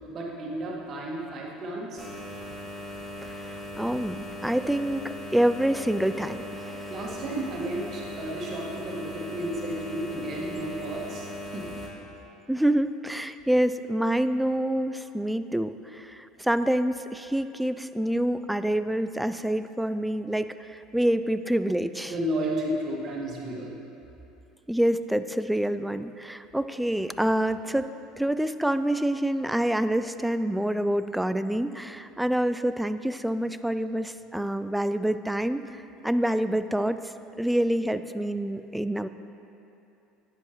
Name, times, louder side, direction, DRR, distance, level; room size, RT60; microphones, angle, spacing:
voice 1, 0.0-2.1 6.9-11.3 11.5-11.7 22.1-23.8, right 1 dB, 45° right, -3 dB, 1.7 m, -32 dB
sound 1, 2.0-11.9, left 1 dB, 20° left, 1.8 m, -39 dB
voice 2, 3.2-6.9 12.5-22.1 24.7-37.0 37.4-39.1, right 1 dB, 5° right, 11 dB, 0.3 m, -27 dB
10.5 x 7.6 x 3.1 m, 2.8 s
hypercardioid pair, 75°, 0 cm